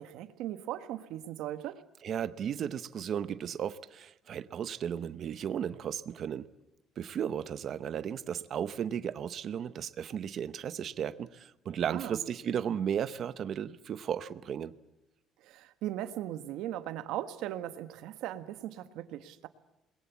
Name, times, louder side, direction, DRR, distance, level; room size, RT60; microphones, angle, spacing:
voice 1, 0.0-1.8 11.8-12.2 15.4-19.5, right 12 dB, 70° right, 1.5 m, -38 dB
voice 2, 2.0-6.5 7.0-14.7, right 8 dB, 40° right, 0.8 m, -35 dB
28.0 x 21.0 x 8.4 m
cardioid pair, 170°, 0 cm